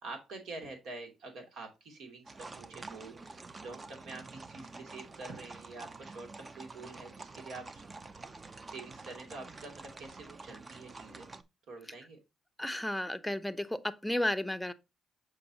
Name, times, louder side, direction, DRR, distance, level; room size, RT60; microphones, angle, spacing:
voice 1, 0.0-7.8 8.7-11.3 11.7-12.2, right 3 dB, 75° right, 2.7 m, -47 dB
sound 1, 2.3-11.4, right 3 dB, 30° right, 0.7 m, -48 dB
voice 2, 12.6-14.7, left 1 dB, 5° left, 0.7 m, -33 dB
6.8 x 5.1 x 2.9 m
cardioid pair, 90°, 0 cm